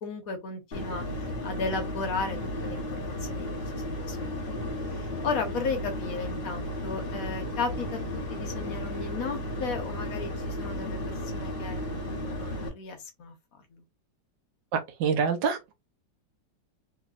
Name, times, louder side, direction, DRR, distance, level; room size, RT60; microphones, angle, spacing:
voice 1, 0.0-3.5 3.7-4.4 4.6-8.0 8.3-13.3 13.7-13.8, left 4 dB, 60° left, 1.1 m, -35 dB
sound 1, 0.7-12.7, left 1 dB, 40° left, 1.1 m, -34 dB
voice 2, 14.7-15.7, right 6 dB, 90° right, 1.4 m, -26 dB
3.4 x 3.0 x 2.4 m
omnidirectional pair, 1.9 m